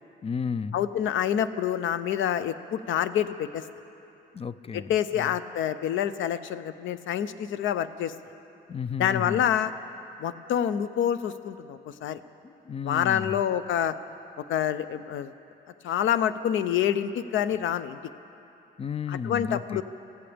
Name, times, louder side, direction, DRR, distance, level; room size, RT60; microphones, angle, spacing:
voice 1, 0.2-0.9 4.3-5.3 8.7-9.5 12.4-13.4 18.8-19.8, left 6 dB, 30° left, 16 dB, 0.4 m, -33 dB
voice 2, 0.7-3.6 4.7-8.1 9.0-9.7 10.2-12.2 12.8-13.9 14.4-15.3 15.8-18.0 19.1-19.8, left 10 dB, 80° left, 13 dB, 0.7 m, -27 dB
26.5 x 15.0 x 3.5 m, 2.8 s
cardioid pair, 90°, 20 cm